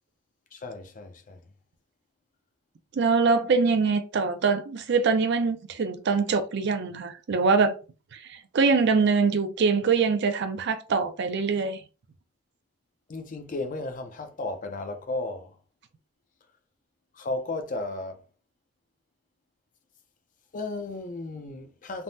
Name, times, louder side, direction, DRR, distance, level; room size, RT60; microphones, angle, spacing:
voice 1, 0.5-1.4 13.1-15.6 17.1-18.2 20.5-22.0, left 2 dB, 40° left, 0.4 m, -34 dB
voice 2, 2.9-7.8 8.1-11.8, right 4 dB, 55° right, 0.4 m, -24 dB
3.4 x 2.0 x 2.7 m
head